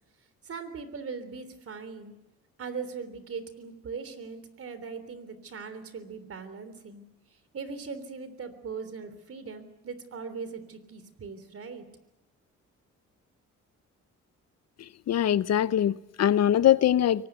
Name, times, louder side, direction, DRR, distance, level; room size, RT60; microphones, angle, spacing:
voice 1, 0.4-2.1 2.6-7.0 7.5-11.8, right 5 dB, 50° right, 3.4 m, -40 dB
voice 2, 15.1-17.3, left 11 dB, 60° left, 0.7 m, -22 dB
23.5 x 19.5 x 8.1 m
cardioid pair, 90°, 30 cm